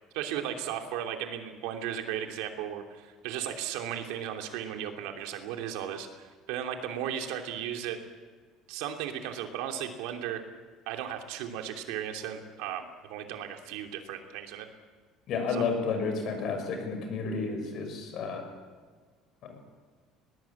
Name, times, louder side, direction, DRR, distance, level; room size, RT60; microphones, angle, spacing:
voice 1, 0.1-8.0 8.7-10.4 10.9-14.7 15.5-15.6, right 9 dB, 85° right, 4 dB, 2.9 m, -36 dB
voice 2, 15.3-18.5 19.4-19.5, left 4 dB, 45° left, 5 dB, 6.2 m, -31 dB
21.0 x 20.5 x 8.5 m, 1.5 s
cardioid pair, 160°, 0 cm